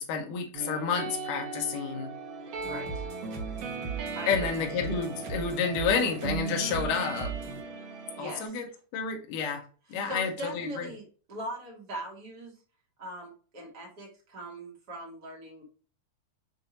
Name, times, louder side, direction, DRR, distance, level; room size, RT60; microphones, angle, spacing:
voice 1, 0.0-2.1 4.3-7.3 8.2-8.6 8.9-9.6 9.9-10.9, left 6 dB, 70° left, 2 dB, 2.3 m, -30 dB
sound 1, 0.5-8.5, right 4 dB, 90° right, 1.3 m, -38 dB
sound 2, 2.6-7.6, right 6 dB, 70° right, 2.8 m, -38 dB
voice 2, 2.7-3.1 4.1-4.5 8.2-8.6 9.9-12.5 13.0-15.6, right 1 dB, 45° right, -2 dB, 1.4 m, -40 dB
6.6 x 2.7 x 2.9 m, 0.39 s
omnidirectional pair, 4.2 m